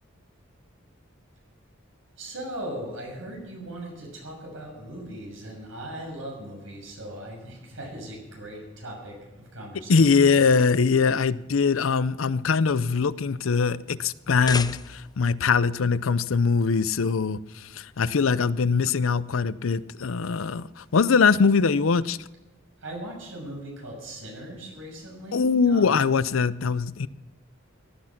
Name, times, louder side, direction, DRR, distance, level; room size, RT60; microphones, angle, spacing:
voice 1, 2.2-10.3 22.8-26.0, right 1 dB, 75° right, 6.6 m, -39 dB
voice 2, 9.9-22.2 25.3-27.1, left 5 dB, 90° left, 0.6 m, -22 dB
sound 1, 14.2-15.3, left 5 dB, 20° left, 0.5 m, -34 dB
17.0 x 11.0 x 5.9 m
head